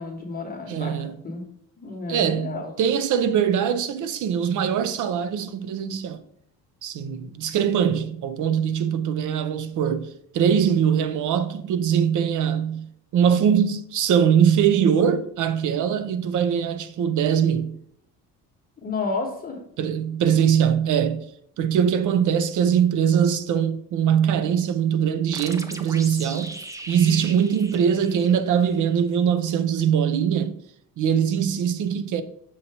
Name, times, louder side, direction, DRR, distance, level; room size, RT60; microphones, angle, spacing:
voice 1, 0.0-1.4 1.8-2.7 18.8-19.6, left 3 dB, 25° left, 1.2 m, -31 dB
voice 2, 0.7-1.2 2.1-6.2 6.8-12.9 13.1-17.8 19.8-21.2 21.6-26.6 26.9-30.6 31.0-32.2, right 8 dB, 60° right, 0.6 m, -22 dB
sound 1, 25.3-28.8, right 2 dB, 10° right, 0.4 m, -39 dB
6.6 x 2.8 x 5.4 m
cardioid pair, 125°, 35 cm